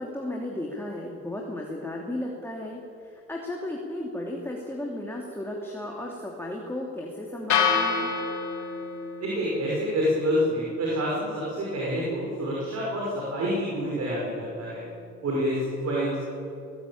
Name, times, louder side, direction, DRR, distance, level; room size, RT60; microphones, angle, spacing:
voice 1, 0.0-8.2, left 1 dB, 5° left, -1 dB, 3.0 m, -34 dB
sound 1, 7.5-15.6, left 6 dB, 70° left, 3.1 m, -32 dB
voice 2, 9.2-13.1 13.3-14.8 15.2-16.2, equal, 60° right, -4 dB, 6.0 m, -27 dB
19.5 x 17.5 x 8.8 m, 2.8 s
cardioid pair, 90°, 30 cm